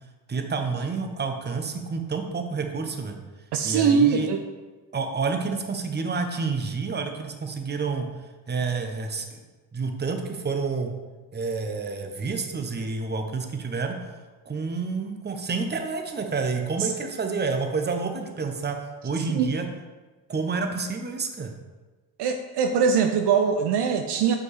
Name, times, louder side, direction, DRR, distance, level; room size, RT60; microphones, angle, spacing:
voice 1, 0.3-3.2 3.6-4.3 4.9-8.1 8.5-9.4 9.7-10.9 11.3-14.0 14.5-19.7 20.3-21.5, right 4 dB, 20° right, 5 dB, 0.8 m, -29 dB
voice 2, 3.5-4.4 16.8-16.9 19.3-19.5 22.2-24.4, right 6 dB, 60° right, 6 dB, 0.6 m, -22 dB
5.9 x 4.8 x 3.3 m, 1.3 s
hypercardioid pair, 55°, 47 cm